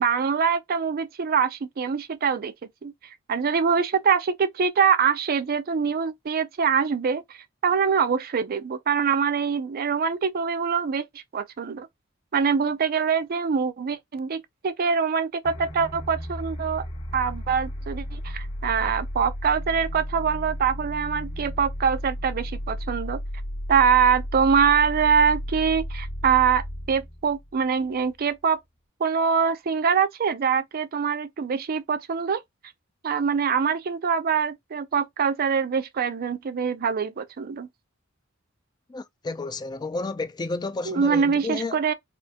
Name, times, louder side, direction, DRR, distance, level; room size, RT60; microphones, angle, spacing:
voice 1, 0.0-2.5 2.8-2.9 3.3-7.2 7.6-11.9 12.3-16.9 17.1-23.2 23.7-28.6 29.0-32.4 33.0-37.7 40.9-41.9, right 6 dB, 45° right, 0.4 m, -24 dB
sound 1, 15.4-28.2, equal, 85° left, 1.9 m, -34 dB
voice 2, 38.9-41.8, left 3 dB, 20° left, 0.3 m, -31 dB
4.2 x 2.1 x 2.8 m
head